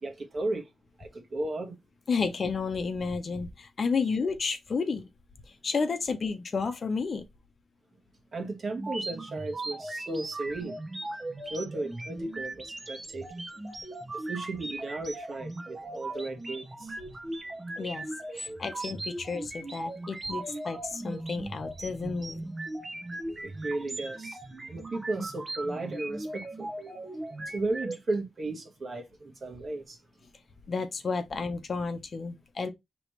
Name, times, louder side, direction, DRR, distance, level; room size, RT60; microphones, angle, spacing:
voice 1, 0.0-0.7 1.0-1.7 8.3-10.8 11.4-13.3 14.1-17.0 20.5-20.6 23.4-24.4 24.7-26.7 27.5-30.0, right 2 dB, 50° right, 1.3 m, -35 dB
voice 2, 2.1-5.0 5.6-7.2 17.8-18.1 18.3-22.4 30.7-32.7, left 4 dB, 50° left, 0.7 m, -31 dB
sound 1, 8.8-28.0, right 2 dB, 25° right, 0.8 m, -38 dB
4.9 x 3.1 x 3.1 m
wide cardioid pair, 120°, 0 cm